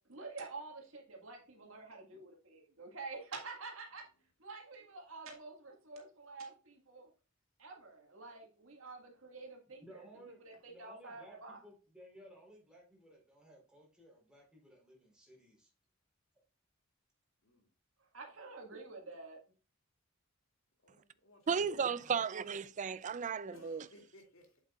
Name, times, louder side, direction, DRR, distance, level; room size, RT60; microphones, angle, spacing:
voice 1, 0.1-4.0 4.4-7.1 7.6-10.1 10.5-11.6 18.0-19.4, right 3 dB, 80° right, 1.8 m, -48 dB
voice 2, 9.8-10.4 10.7-15.7, right 1 dB, 5° right, 3.6 m, -58 dB
voice 3, 20.8-22.2 23.5-24.6, left 1 dB, 70° left, 2.4 m, -60 dB
voice 4, 21.5-23.8, right 6 dB, 35° right, 0.4 m, -34 dB
8.1 x 7.7 x 2.4 m
head